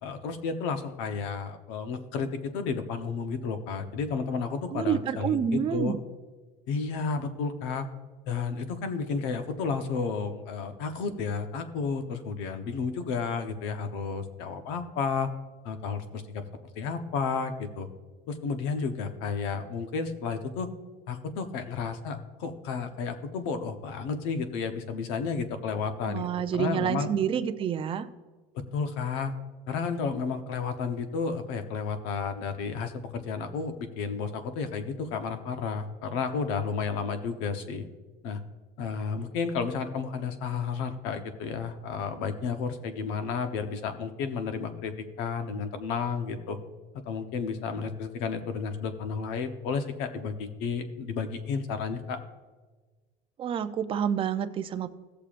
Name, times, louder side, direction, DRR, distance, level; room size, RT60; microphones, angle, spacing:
voice 1, 0.0-5.9 6.7-7.9 8.3-15.3 15.6-16.4 16.8-17.9 18.3-20.7 21.1-26.3 26.6-27.1 28.5-29.3 29.7-37.8 38.2-38.4 38.8-44.9 45.2-46.6 47.0-52.2, left 5 dB, 75° left, 8 dB, 1.0 m, -32 dB
voice 2, 4.7-6.0 26.1-28.1 53.4-54.9, right 8 dB, 30° right, 10 dB, 0.4 m, -28 dB
17.0 x 6.8 x 2.5 m, 1.3 s
cardioid pair, 150°, 19 cm